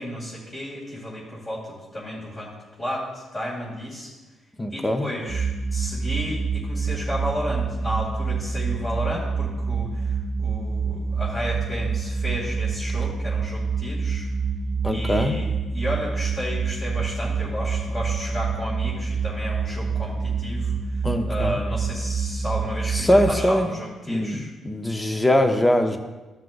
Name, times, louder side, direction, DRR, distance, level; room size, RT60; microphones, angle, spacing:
voice 1, 0.0-2.5 2.8-4.1 4.7-14.3 14.9-20.8 21.2-24.5, equal, 30° left, -6 dB, 2.4 m, -32 dB
voice 2, 4.6-5.1 14.8-15.4 21.0-21.6 22.9-23.7 24.1-26.0, left 1 dB, 10° left, 6 dB, 0.8 m, -22 dB
sound 1, 5.3-23.3, right 5 dB, 45° right, 0.4 m, -27 dB
13.5 x 5.8 x 2.6 m, 1.2 s
cardioid pair, 90°, 0 cm